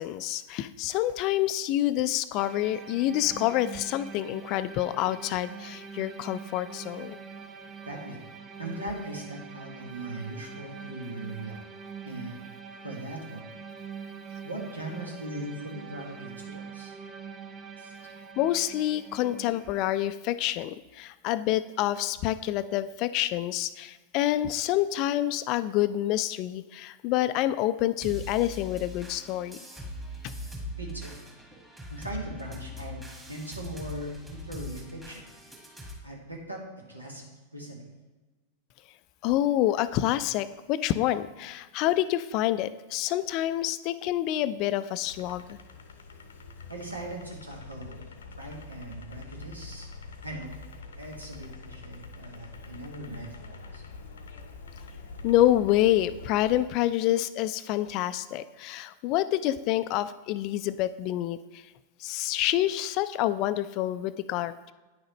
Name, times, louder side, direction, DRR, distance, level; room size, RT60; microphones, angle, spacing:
voice 1, 0.0-7.2 18.4-29.6 39.2-45.6 55.2-61.6 62.0-64.7, left 14 dB, 40° left, 15 dB, 0.3 m, -27 dB
sound 1, 2.4-19.8, right 6 dB, 25° right, 0.6 m, -44 dB
voice 2, 7.8-8.2 8.6-11.6 12.0-12.4 12.8-13.4 14.4-16.9 17.8-18.0 30.8-31.2 31.9-33.0 33.3-35.2 36.0-36.6 36.9-37.2 37.5-37.8 46.7-48.0 48.4-49.9 50.2-50.5 50.9-53.8, right 1 dB, 80° right, -1 dB, 1.5 m, -39 dB
sound 2, 28.0-35.9, left 1 dB, 10° right, 1.6 m, -41 dB
sound 3, 45.0-56.6, left 3 dB, 65° left, 0.7 m, -45 dB
9.4 x 6.3 x 3.1 m, 1.2 s
figure-of-eight pair, 90°, 0 cm